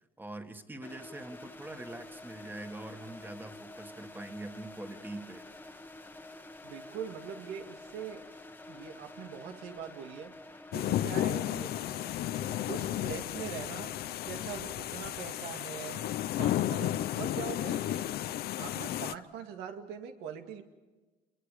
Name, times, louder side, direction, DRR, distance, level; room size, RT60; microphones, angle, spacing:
voice 1, 0.2-5.4, right 2 dB, 10° right, 6 dB, 1.9 m, -43 dB
sound 1, 0.8-17.7, left 2 dB, 10° left, 1.4 m, -50 dB
voice 2, 6.6-8.3 8.7-10.4 10.7-11.8 12.7-13.9 14.3-16.1 16.4-18.1 18.6-20.6, right 8 dB, 90° right, 5 dB, 2.3 m, -42 dB
sound 2, 10.7-19.1, left 13 dB, 70° left, 0.7 m, -33 dB
28.5 x 22.0 x 5.0 m, 1.2 s
cardioid pair, 110°, 17 cm